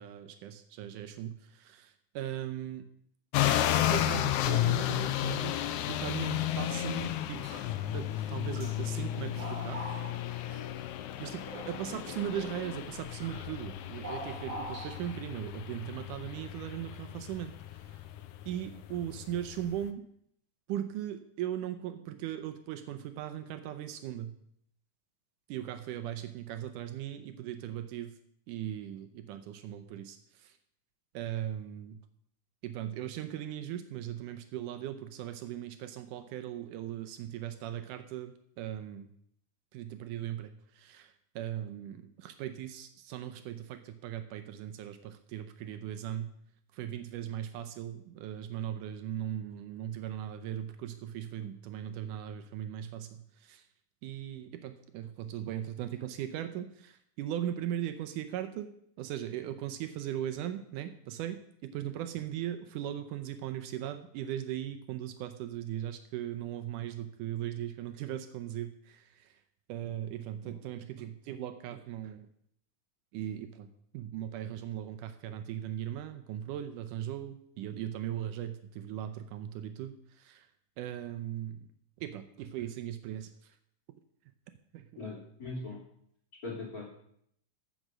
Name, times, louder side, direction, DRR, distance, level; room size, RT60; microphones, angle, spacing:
voice 1, 0.0-2.8 3.9-5.6 5.9-7.4 7.9-9.8 11.2-17.5 18.5-20.0 20.7-24.3 25.5-28.1 28.5-30.5 31.1-32.0 32.6-39.1 39.7-46.3 46.7-53.6 54.0-58.7 59.0-69.3 69.7-72.3 73.1-73.7 73.9-80.5 80.8-81.7 82.0-83.3 84.7-85.0, right 11 dB, 80° right, 9 dB, 2.1 m, -38 dB
sound 1, 3.3-19.9, left 12 dB, 80° left, 2.0 m, -33 dB
sound 2, 5.4-6.0 6.3-6.4 7.4-7.9 8.1-8.8 9.2-10.9 11.4-12.2 13.2-13.6 14.0-15.3, right 1 dB, 45° right, 5.7 m, -44 dB
voice 2, 85.0-85.8 86.4-86.9, left 3 dB, 25° left, -3 dB, 3.1 m, -40 dB
14.5 x 6.2 x 6.3 m, 0.70 s
omnidirectional pair, 3.8 m